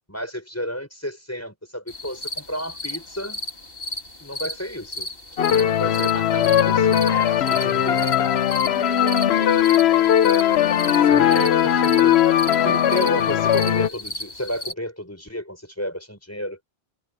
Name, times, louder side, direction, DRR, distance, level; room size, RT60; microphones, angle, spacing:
voice 1, 0.1-3.4 4.2-5.1 5.5-6.9 7.5-8.3 11.1-16.6, equal, 15° left, 5.6 m, -32 dB
sound 1, 1.9-14.7, left 1 dB, 65° left, 3.2 m, -35 dB
sound 2, 5.4-13.9, left 10 dB, 80° left, 1.0 m, -19 dB
voice 2, 7.1-8.2 8.6-11.1, right 4 dB, 65° right, 2.0 m, -39 dB
omnidirectional pair, 1.1 m